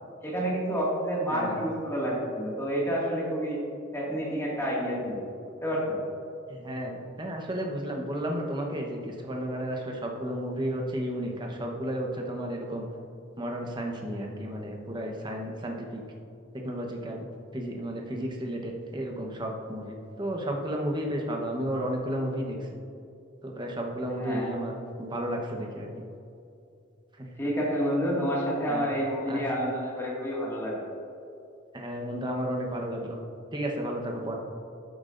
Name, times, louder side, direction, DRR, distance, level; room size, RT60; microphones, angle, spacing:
voice 1, 0.2-3.6 3.9-5.2 5.6-6.0 24.1-24.6 27.4-30.8, equal, 15° left, -5 dB, 2.0 m, -29 dB
voice 2, 6.6-9.0 9.2-12.8 13.4-15.7 16.6-17.2 17.5-19.8 20.2-22.6 23.4-25.9 28.7-28.8 29.3-29.4 31.7-33.2 33.5-34.3, equal, 25° right, 1 dB, 1.0 m, -32 dB
13.0 x 8.0 x 2.6 m, 2.5 s
head